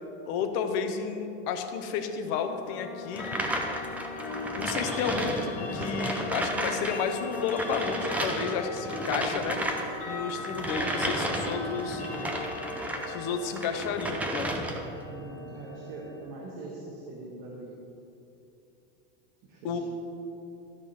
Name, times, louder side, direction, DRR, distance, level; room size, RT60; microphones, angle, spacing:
voice 1, 0.3-3.3 4.5-9.6 10.1-12.0 13.1-14.7 19.6-19.8, left 6 dB, 50° left, 6 dB, 0.9 m, -32 dB
Brass instrument, 2.3-8.1, left 9 dB, 85° left, 1.9 m, -42 dB
Clock, 3.1-16.2, left 2 dB, 20° left, 1.8 m, -39 dB
sound 1, 3.1-7.0 7.2-13.1 13.5-15.0, right 1 dB, 5° right, 0.4 m, -33 dB
voice 2, 9.0-9.3 10.4-11.7 15.0-17.7 19.4-19.8, right 2 dB, 60° right, -3 dB, 1.6 m, -42 dB
13.0 x 5.2 x 5.8 m, 2.8 s
supercardioid pair, 170°, 31 cm